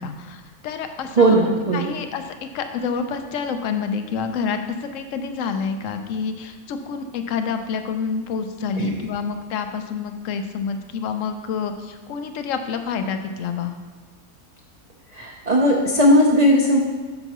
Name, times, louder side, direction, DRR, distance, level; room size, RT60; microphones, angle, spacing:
voice 1, 0.0-1.4 1.7-13.7, left 6 dB, 65° left, 7 dB, 1.0 m, -28 dB
voice 2, 1.2-1.9 8.8-8.9 15.1-16.8, equal, 40° right, -1 dB, 0.6 m, -17 dB
9.0 x 6.8 x 3.0 m, 1.4 s
omnidirectional pair, 1.5 m